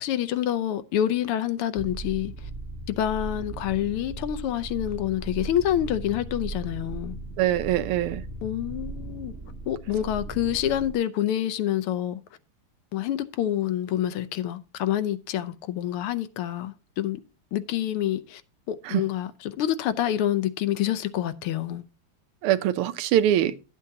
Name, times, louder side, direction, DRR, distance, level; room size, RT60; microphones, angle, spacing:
voice 1, 0.0-2.5 2.9-7.2 8.4-9.3 9.7-12.2 12.9-17.2 17.5-18.4 18.7-21.8, left 11 dB, 80° left, 1.6 m, -27 dB
sound 1, 1.8-10.9, right 3 dB, 40° right, 1.1 m, -37 dB
voice 2, 7.4-8.2 18.8-19.0 22.4-23.6, right 12 dB, 85° right, 1.6 m, -23 dB
12.5 x 8.2 x 2.8 m
omnidirectional pair, 2.4 m